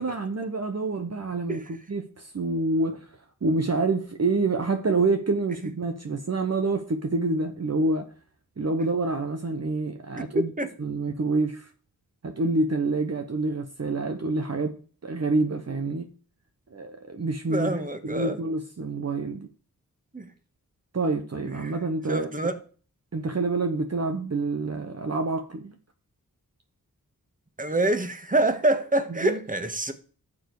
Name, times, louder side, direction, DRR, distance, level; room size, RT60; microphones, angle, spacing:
voice 1, 0.0-3.1 3.4-8.1 8.6-10.5 10.8-11.7 12.2-14.8 15.0-16.1 16.7-19.5 20.9-22.6 23.1-25.7 29.2-29.4, right 3 dB, 45° right, 1.2 m, -27 dB
voice 2, 17.5-18.4 20.1-20.3 21.6-21.7 22.1-22.5 27.6-29.9, right 2 dB, 20° right, 1.7 m, -26 dB
11.5 x 7.2 x 4.9 m
cardioid pair, 40°, 37 cm